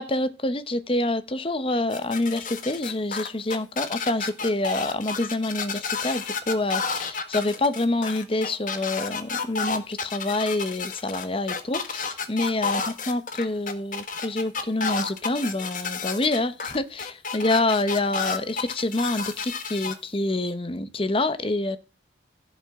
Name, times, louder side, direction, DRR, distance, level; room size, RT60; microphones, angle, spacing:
voice 1, 0.0-21.8, left 2 dB, 30° left, 0.9 m, -27 dB
sound 1, 1.9-19.9, left 5 dB, 45° left, 1.5 m, -31 dB
16.0 x 7.3 x 3.7 m
head